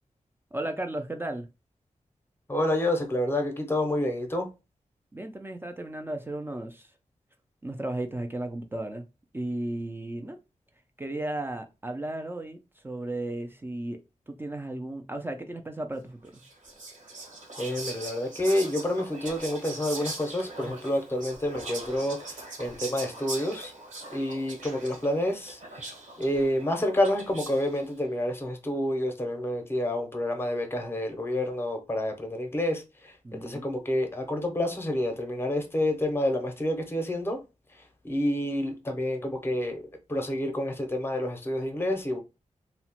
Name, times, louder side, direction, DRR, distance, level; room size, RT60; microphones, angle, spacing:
voice 1, 0.5-1.5 5.1-6.9 7.6-9.0 9.3-10.4 11.0-14.0 14.3-16.4 33.2-33.6, right 1 dB, 15° right, 0.3 m, -34 dB
voice 2, 2.5-4.5 17.6-23.7 24.1-25.6 26.2-37.4 38.0-39.8 40.1-42.2, left 1 dB, 20° left, 0.6 m, -28 dB
Whispering, 16.3-27.8, right 2 dB, 75° right, 1.2 m, -41 dB
2.8 x 2.1 x 2.8 m
wide cardioid pair, 110°, 13 cm